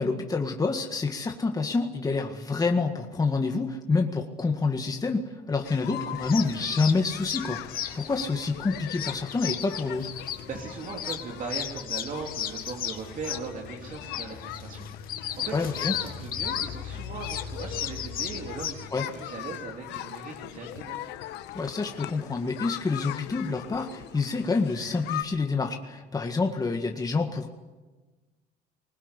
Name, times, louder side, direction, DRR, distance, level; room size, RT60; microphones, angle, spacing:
voice 1, 0.0-7.6 7.9-10.1 15.5-15.9 18.9-19.1 21.5-27.5, left 4 dB, 20° left, 3 dB, 1.8 m, -27 dB
sound 1, 5.6-25.2, left 13 dB, 90° left, 1.3 m, -40 dB
sound 2, 6.2-18.7, left 9 dB, 60° left, 2.4 m, -35 dB
voice 2, 10.2-21.0, right 4 dB, 50° right, 0 dB, 3.2 m, -39 dB
21.0 x 19.0 x 9.9 m, 1.2 s
cardioid pair, 110°, 17 cm